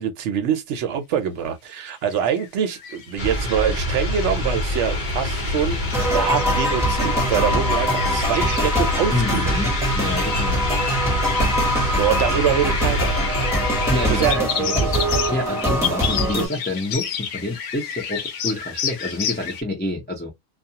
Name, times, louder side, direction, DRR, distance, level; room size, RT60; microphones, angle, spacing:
voice 1, 0.0-9.6 12.0-13.1 14.1-15.1, right 8 dB, 65° right, 0.9 m, -24 dB
sound 1, 1.9-19.6, left 8 dB, 70° left, 0.9 m, -32 dB
sound 2, 3.2-14.3, left 1 dB, 40° left, 0.9 m, -25 dB
sound 3, 5.9-16.5, equal, ahead, 0.9 m, -23 dB
voice 2, 9.1-10.6 13.9-14.8 15.3-20.3, left 2 dB, 15° left, 0.3 m, -27 dB
2.4 x 2.3 x 2.8 m
omnidirectional pair, 1.4 m